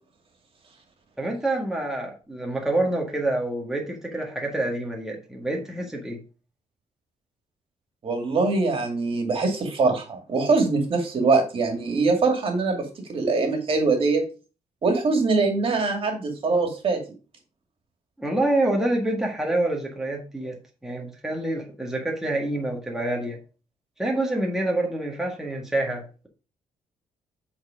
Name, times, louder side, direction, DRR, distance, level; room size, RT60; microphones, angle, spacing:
voice 1, 1.2-6.2 18.2-23.4 24.0-26.3, right 1 dB, 5° right, -1 dB, 1.6 m, -27 dB
voice 2, 8.0-14.2 14.8-17.0, right 3 dB, 45° right, 4 dB, 2.3 m, -23 dB
8.4 x 4.3 x 5.0 m, 0.34 s
cardioid pair, 130°, 13 cm